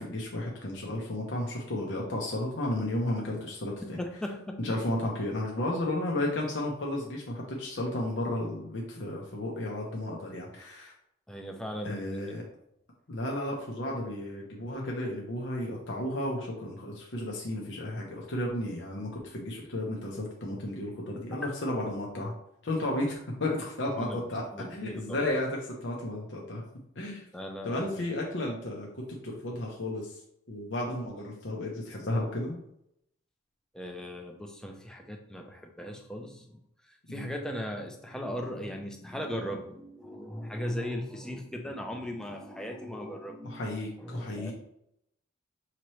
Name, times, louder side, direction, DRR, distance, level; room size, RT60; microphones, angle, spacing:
voice 1, 0.0-4.0 4.6-10.9 11.8-12.4 13.1-22.3 22.6-24.4 24.7-26.6 27.0-27.2 27.6-30.2 30.5-32.6 37.1-37.3 43.4-44.5, left 1 dB, 75° left, -2 dB, 0.8 m, -33 dB
voice 2, 3.8-4.6 11.3-12.4 21.3-21.5 24.0-24.2 24.5-25.2 27.3-28.2 33.7-43.7 44.0-44.5, equal, 5° left, 2 dB, 0.5 m, -38 dB
5.8 x 2.9 x 3.1 m, 0.76 s
head